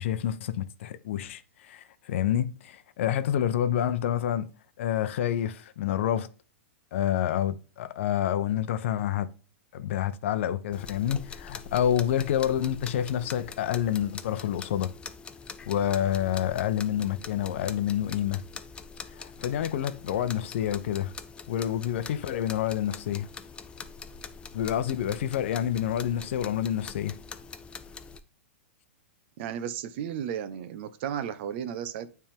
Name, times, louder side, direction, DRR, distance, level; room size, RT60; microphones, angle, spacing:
voice 1, 0.0-4.5 4.8-6.3 6.9-9.3 9.7-14.9 15.7-18.4 19.1-21.1 21.5-23.3 24.5-27.2, left 10 dB, 65° left, 0.7 m, -28 dB
sound 1, 10.7-28.2, left 5 dB, 15° left, 0.5 m, -44 dB
voice 2, 29.4-32.1, right 9 dB, 55° right, 0.8 m, -34 dB
8.7 x 3.5 x 3.4 m
hypercardioid pair, 130°, 7 cm